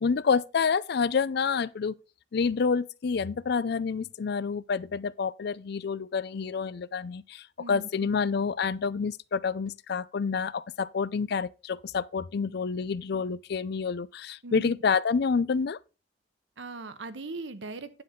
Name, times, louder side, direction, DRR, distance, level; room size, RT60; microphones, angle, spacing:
voice 1, 0.0-1.9 2.3-15.8, left 5 dB, 60° left, 0.4 m, -28 dB
voice 2, 7.6-8.1 14.4-14.7 16.6-18.0, right 3 dB, 80° right, 1.0 m, -40 dB
9.8 x 7.4 x 3.7 m
head